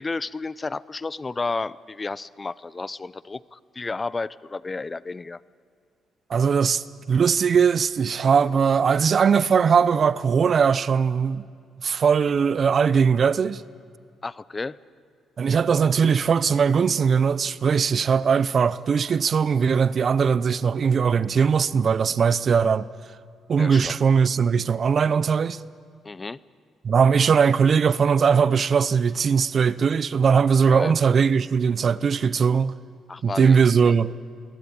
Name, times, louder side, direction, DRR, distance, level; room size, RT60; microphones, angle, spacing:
voice 1, 0.0-5.4 14.2-14.8 23.6-24.0 26.0-26.4 30.7-30.9 33.1-33.6 33.8-33.9, left 3 dB, 25° left, 0.5 m, -32 dB
voice 2, 6.3-11.5 11.8-13.6 15.4-22.9 23.5-25.6 26.8-32.8 33.2-34.1, right 6 dB, 50° right, 0.7 m, -20 dB
22.5 x 17.5 x 8.7 m
cardioid pair, 90°, 0 cm